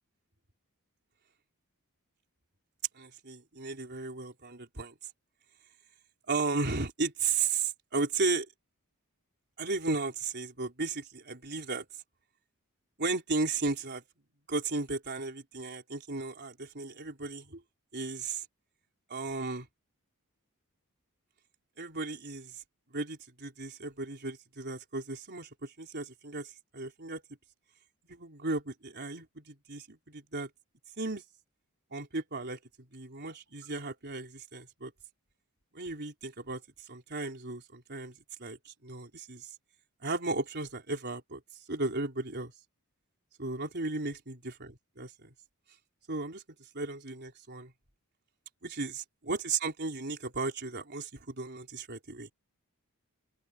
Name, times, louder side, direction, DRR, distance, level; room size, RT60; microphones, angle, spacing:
voice 1, 2.9-4.9 6.3-8.5 9.6-11.9 13.0-14.0 14.5-17.6 17.9-18.4 19.1-19.7 21.8-22.6 22.9-27.2 28.1-30.5 31.0-31.2 31.9-32.6 32.9-34.9 35.7-39.5 40.0-41.4 41.7-42.5 43.4-45.3 46.1-46.4 46.7-47.7 48.6-52.3, right 3 dB, 50° right, 4.2 m, -35 dB
open air
head